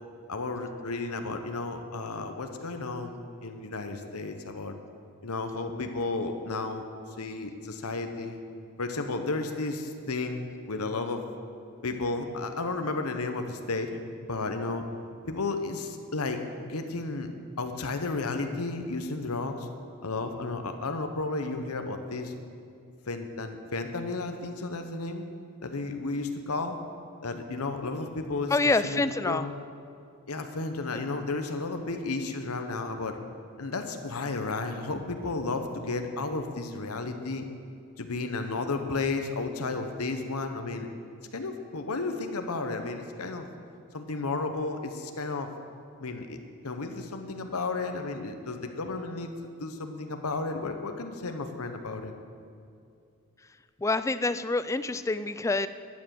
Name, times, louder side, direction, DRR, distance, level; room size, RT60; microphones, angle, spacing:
voice 1, 0.3-4.7 5.2-6.9 7.2-8.4 8.8-11.2 11.8-14.0 14.3-14.8 15.2-17.3 17.6-19.7 20.0-22.3 23.1-25.2 25.6-26.8 27.2-29.5 30.3-33.2 33.6-37.4 38.0-40.9 41.3-43.5 43.9-45.5 46.0-46.4 46.6-49.3 49.6-52.1, left 3 dB, 80° left, 6 dB, 1.0 m, -33 dB
voice 2, 28.5-29.4 30.9-31.0 53.8-55.7, left 3 dB, 15° left, 13 dB, 0.3 m, -26 dB
13.0 x 9.4 x 7.6 m, 2.4 s
head